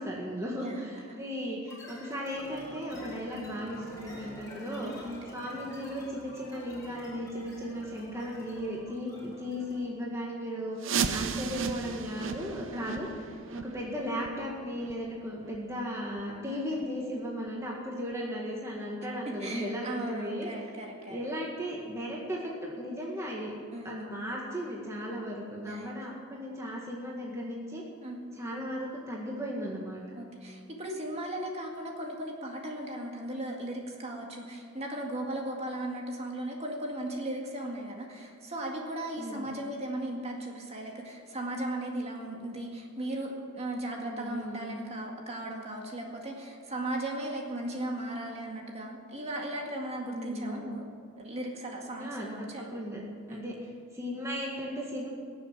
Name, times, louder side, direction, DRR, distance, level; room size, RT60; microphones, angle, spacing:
voice 1, 0.0-13.1 13.5-20.5 21.1-23.5 23.8-27.8 28.3-30.0 39.2-39.6 44.0-44.6 50.1-50.7 52.0-53.6 53.9-55.1, equal, 15° right, -3 dB, 1.8 m, -36 dB
voice 2, 0.6-1.2 4.8-5.4 12.7-13.1 16.5-16.6 19.4-21.2 23.7-24.1 25.6-25.9 28.0-28.2 30.2-50.9 51.2-52.7 53.3-53.5, right 1 dB, 30° right, 0 dB, 2.1 m, -37 dB
sound 1, 1.7-10.0, left 1 dB, 15° left, 3.4 m, -48 dB
sound 2, 10.8-16.4 16.7-16.8 17.4-17.5 18.1-18.2 18.7-18.8, right 6 dB, 65° right, 0.8 m, -36 dB
19.5 x 7.6 x 9.0 m, 2.2 s
head